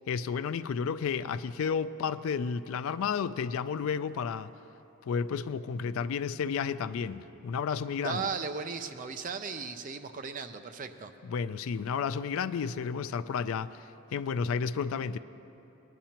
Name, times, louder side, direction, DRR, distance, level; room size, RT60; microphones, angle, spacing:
voice 1, 0.1-4.5 5.1-8.2 11.3-13.8 14.1-15.2, left 6 dB, 70° left, 0.3 m, -32 dB
voice 2, 8.0-11.1, right 5 dB, 35° right, 0.4 m, -36 dB
18.5 x 10.5 x 2.9 m
head